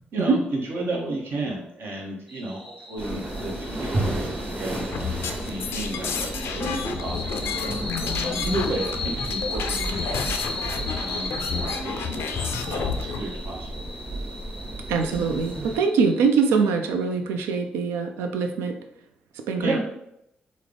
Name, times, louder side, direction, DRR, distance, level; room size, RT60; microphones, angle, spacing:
voice 1, 0.1-12.2 12.7-13.7 19.6-19.8, right 2 dB, 65° right, -1 dB, 0.8 m, -33 dB
sound 1, 2.3-16.8, left 2 dB, 5° right, 0.8 m, -37 dB
sound 2, 3.0-15.8, right 1 dB, 50° right, 1.2 m, -33 dB
sound 3, 4.9-13.2, left 6 dB, 75° left, 0.3 m, -31 dB
voice 2, 14.9-18.8 19.5-19.8, right 5 dB, 85° right, 6 dB, 0.3 m, -23 dB
3.2 x 2.0 x 3.7 m, 0.80 s
supercardioid pair, 45°, 4 cm